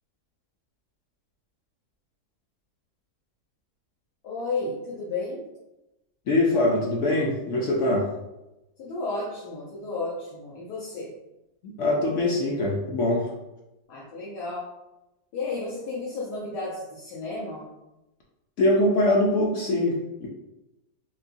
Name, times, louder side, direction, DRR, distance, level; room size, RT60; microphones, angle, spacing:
voice 1, 4.2-5.5 8.8-11.1 13.9-14.7 15.3-17.7, left 3 dB, 85° left, -5 dB, 1.3 m, -33 dB
voice 2, 6.3-8.1 11.6-13.3 18.6-20.3, left 1 dB, 65° left, -2 dB, 0.8 m, -23 dB
3.7 x 2.7 x 2.7 m, 0.95 s
omnidirectional pair, 1.7 m